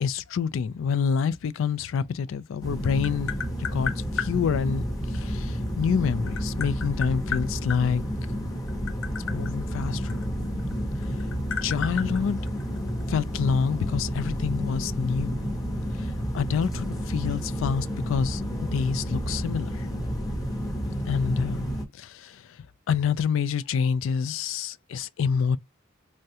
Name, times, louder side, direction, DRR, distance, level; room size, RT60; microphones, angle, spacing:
voice 1, 0.0-3.3 3.7-4.8 5.1-8.0 9.3-10.2 11.1-11.2 11.6-12.4 13.1-15.4 15.9-18.4 18.7-19.9 21.1-21.7 21.9-22.5 22.9-25.6, left 6 dB, 65° left, 0.3 m, -27 dB
Tap, 2.5-4.3 5.7-7.8 8.6-10.7 11.0-13.0, left 7 dB, 80° left, 0.9 m, -33 dB
sound 1, 2.6-21.8, equal, 15° left, 0.7 m, -30 dB
3.4 x 2.1 x 2.7 m
head